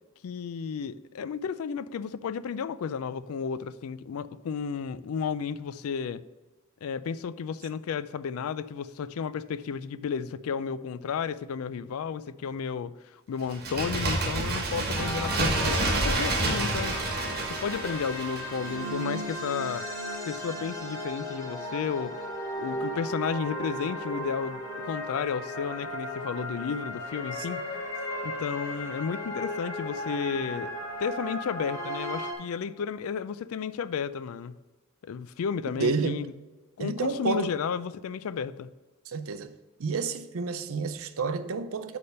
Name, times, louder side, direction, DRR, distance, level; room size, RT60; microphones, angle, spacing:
voice 1, 0.2-6.2 6.8-17.1 17.5-19.9 20.2-22.3 22.6-27.7 28.2-30.7 31.0-34.6 35.0-36.3 36.8-38.7, left 6 dB, 75° left, 0.4 m, -33 dB
Bird, 13.5-19.0 19.3-19.4, right 2 dB, 50° right, 1.2 m, -29 dB
sound 1, 14.9-32.3, equal, 15° left, 2.2 m, -35 dB
voice 2, 35.8-36.2 36.8-37.6 39.1-39.5 39.8-42.0, right 4 dB, 70° right, 0.5 m, -30 dB
8.5 x 3.5 x 6.7 m
head